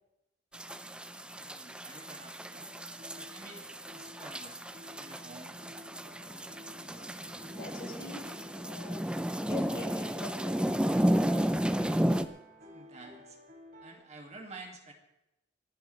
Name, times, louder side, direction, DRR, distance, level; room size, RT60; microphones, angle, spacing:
sound 1, 0.5-12.3, equal, 5° right, 0.6 m, -33 dB
voice 1, 1.4-2.7 3.1-3.6 3.9-5.6 12.6-13.4 13.8-14.9, right 3 dB, 35° right, 2 dB, 2.4 m, -50 dB
sound 2, 2.5-13.9, left 1 dB, 55° right, 3.6 m, -54 dB
voice 2, 7.1-10.9 11.2-11.6, left 2 dB, 80° left, -2 dB, 5.5 m, -46 dB
28.5 x 10.5 x 3.4 m, 0.91 s
head